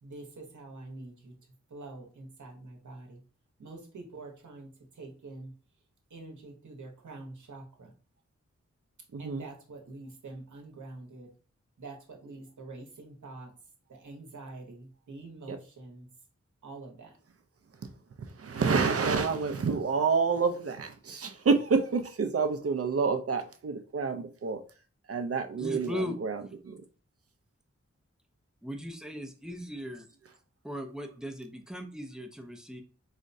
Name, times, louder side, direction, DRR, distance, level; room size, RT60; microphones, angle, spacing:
voice 1, 0.0-1.3 1.7-3.2 3.6-5.5 6.1-7.9 9.2-11.3 11.8-13.5 13.9-16.1 16.6-17.2, right 2 dB, 90° right, 1 dB, 0.9 m, -46 dB
voice 2, 9.1-9.4 15.5-15.6 18.4-24.6 25.1-26.7, right 5 dB, 55° right, 7 dB, 0.5 m, -28 dB
voice 3, 25.5-26.2 28.6-30.1 30.6-32.8, equal, ahead, 3 dB, 0.5 m, -38 dB
4.7 x 2.1 x 2.6 m, 0.38 s
wide cardioid pair, 65°, 29 cm